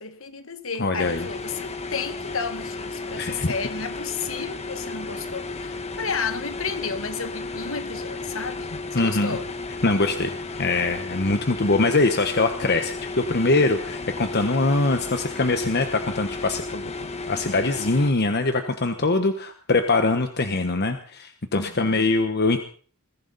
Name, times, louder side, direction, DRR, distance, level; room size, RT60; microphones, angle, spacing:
voice 1, 0.0-9.5 21.5-22.2, left 5 dB, 65° left, 1.7 m, -32 dB
voice 2, 0.8-1.3 3.2-3.5 8.9-9.4 9.8-16.9 17.3-22.6, left 3 dB, 50° left, 1.1 m, -23 dB
sound 1, 1.0-18.1, left 3 dB, 30° left, 1.4 m, -34 dB
21.5 x 15.5 x 4.1 m
head